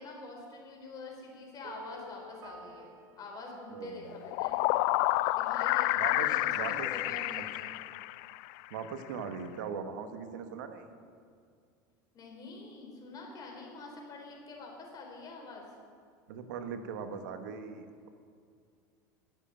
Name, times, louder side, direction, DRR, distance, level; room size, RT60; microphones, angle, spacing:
voice 1, 0.0-4.6 5.3-7.7 12.1-15.7, left 3 dB, 40° left, 0 dB, 3.9 m, -46 dB
sound 1, 1.6-4.6, right 1 dB, 40° right, 2.0 m, -51 dB
voice 2, 3.7-4.2 6.0-7.2 8.7-10.9 16.3-18.1, right 6 dB, 80° right, 8 dB, 1.2 m, -40 dB
sound 2, 4.1-8.5, left 18 dB, 65° left, 0.4 m, -29 dB
11.5 x 7.8 x 8.9 m, 2.3 s
hypercardioid pair, 100°, 10 cm